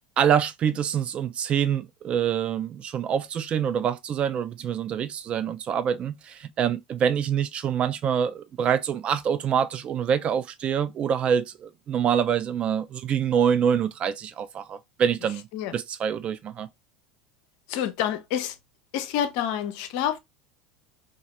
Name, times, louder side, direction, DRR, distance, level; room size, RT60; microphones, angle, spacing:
voice 1, 0.2-15.5 15.7-16.7, right 8 dB, 35° right, 0.4 m, -25 dB
voice 2, 17.7-18.6 18.9-20.2, left 10 dB, 55° left, 0.5 m, -28 dB
2.8 x 2.4 x 2.8 m
figure-of-eight pair, 75°, 3 cm